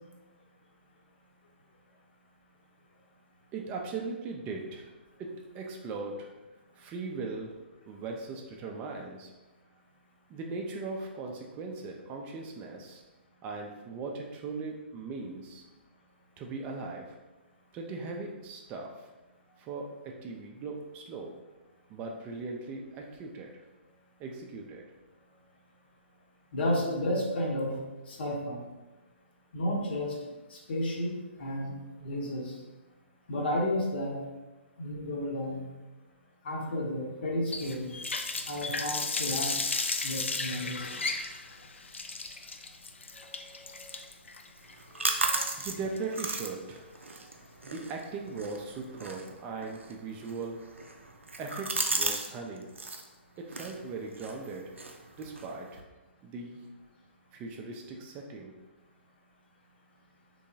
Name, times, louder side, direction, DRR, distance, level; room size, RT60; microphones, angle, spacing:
voice 1, 3.5-4.9 5.2-6.3 6.7-7.6 7.9-9.3 10.3-13.0 13.4-15.6 16.4-17.2 17.7-19.1 19.6-21.4 21.9-23.6 24.2-24.9 45.6-46.9 47.6-50.6 51.4-52.7 53.4-54.7 55.2-55.8 56.2-56.7 57.3-58.5, right 3 dB, 20° right, 1 dB, 0.3 m, -39 dB
voice 2, 26.5-27.8 28.1-28.6 29.5-30.2 30.5-31.1 31.4-31.7 32.0-32.6 33.3-34.2 34.8-35.7 36.4-37.9 38.5-39.5 40.0-41.0 43.1-44.0 45.0-45.5, left 1 dB, 55° left, -1 dB, 0.8 m, -32 dB
Water tap faucet, 37.5-46.4, left 3 dB, 75° left, 0.4 m, -35 dB
sound 1, 44.6-52.3 52.6-53.1 53.5-55.8, right 3 dB, 85° right, 0.4 m, -36 dB
3.5 x 3.1 x 2.6 m, 1.1 s
figure-of-eight pair, 125°, 7 cm